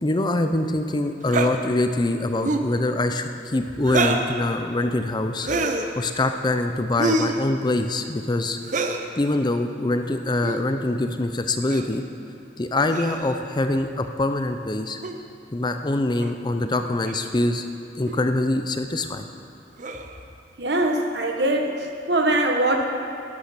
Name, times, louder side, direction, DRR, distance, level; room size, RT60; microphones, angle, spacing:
voice 1, 0.0-8.6 9.2-12.0 12.6-15.0 15.5-17.6 18.0-19.3, left 2 dB, 25° left, 7 dB, 0.5 m, -24 dB
sound 1, 1.3-1.5 2.4-2.7 3.8-4.3 5.4-5.9 7.0-7.4 8.6-9.0 10.3-10.6 11.7-11.9 12.9-13.4 15.0-15.2 16.2-16.3 17.0-17.2 18.0-18.2 19.8-20.2, right 2 dB, 45° right, 0.8 m, -26 dB
voice 2, 20.6-22.8, right 1 dB, 65° right, 3 dB, 1.3 m, -22 dB
12.5 x 11.5 x 5.9 m, 2.6 s
head